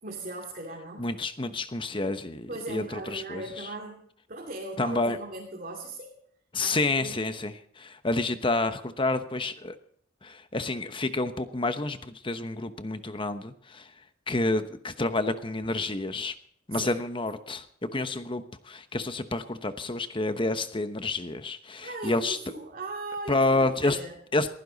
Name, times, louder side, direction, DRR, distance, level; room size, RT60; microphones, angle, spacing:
voice 1, 0.0-1.1 2.5-4.0 4.3-6.1 6.6-7.2 16.7-17.0 21.8-24.2, right 2 dB, 45° right, -1 dB, 2.9 m, -38 dB
voice 2, 1.0-3.4 4.8-5.2 6.5-9.7 10.2-13.9 14.3-16.3 16.7-22.4 23.3-24.0 24.3-24.5, left 2 dB, 25° left, 10 dB, 1.0 m, -29 dB
21.5 x 15.5 x 4.1 m, 0.64 s
head